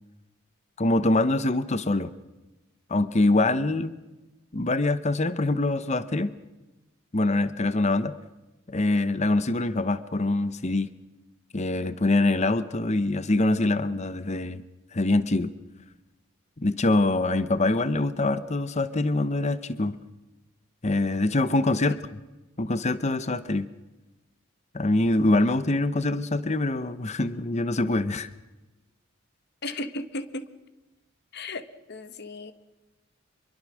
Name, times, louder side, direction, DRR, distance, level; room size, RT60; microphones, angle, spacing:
voice 1, 0.8-2.1 2.9-4.0 4.5-6.3 7.1-8.1 8.7-10.9 11.5-14.6 14.9-15.5 16.6-20.0 20.8-21.9 22.6-23.7 24.7-28.3, left 2 dB, 35° left, 14 dB, 0.9 m, -24 dB
voice 2, 29.6-30.5 31.3-32.5, left 2 dB, 55° left, 11 dB, 1.6 m, -35 dB
25.5 x 23.0 x 6.3 m, 1.0 s
head